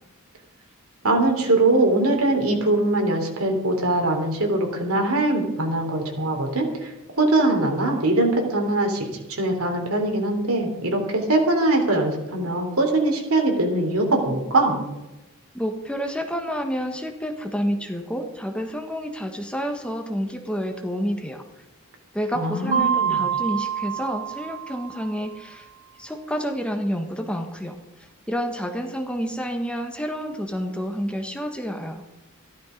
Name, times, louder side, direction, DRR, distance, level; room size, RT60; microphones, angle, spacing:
voice 1, 1.0-14.8 22.3-23.2, right 2 dB, 75° right, 3 dB, 3.4 m, -22 dB
voice 2, 15.5-21.4 22.1-25.7 26.0-27.8 28.3-32.0, equal, 5° left, 5 dB, 1.3 m, -29 dB
Mallet percussion, 22.7-25.3, right 8 dB, 35° right, 2.0 m, -26 dB
14.5 x 12.5 x 5.2 m, 1.0 s
head